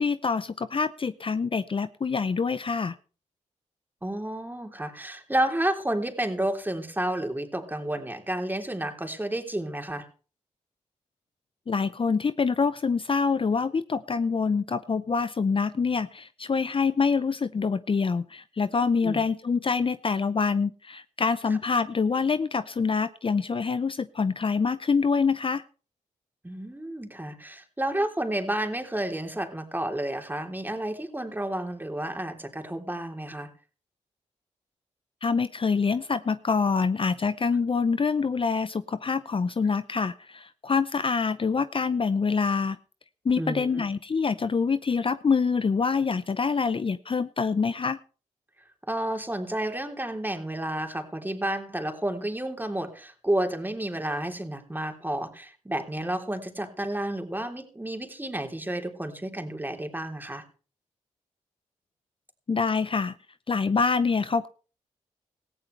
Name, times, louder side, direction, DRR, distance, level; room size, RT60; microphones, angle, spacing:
voice 1, 0.0-3.0 11.7-25.6 35.2-42.8 43.2-48.0 62.5-63.1 63.5-64.5, left 5 dB, 40° left, 14 dB, 0.7 m, -26 dB
voice 2, 4.0-10.1 19.0-19.2 26.4-33.5 43.4-43.8 48.9-60.4, right 1 dB, 15° right, 4 dB, 3.4 m, -31 dB
18.0 x 14.5 x 3.3 m, 0.37 s
supercardioid pair, 45°, 14 cm